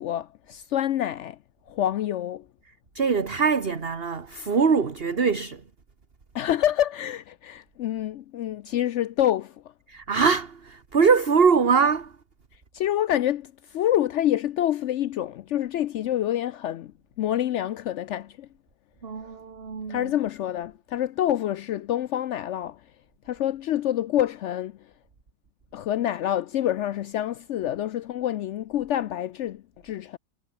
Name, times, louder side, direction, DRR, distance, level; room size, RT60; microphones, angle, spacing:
voice 1, 0.0-1.4 1.7-2.4 6.3-9.5 12.7-16.9 17.2-18.5 19.9-22.8 23.3-24.8 25.7-30.2, left 12 dB, 85° left, 0.6 m, -27 dB
voice 2, 2.9-5.6 9.9-12.1 19.0-20.1, right 5 dB, 35° right, 1.7 m, -23 dB
omnidirectional pair, 1.8 m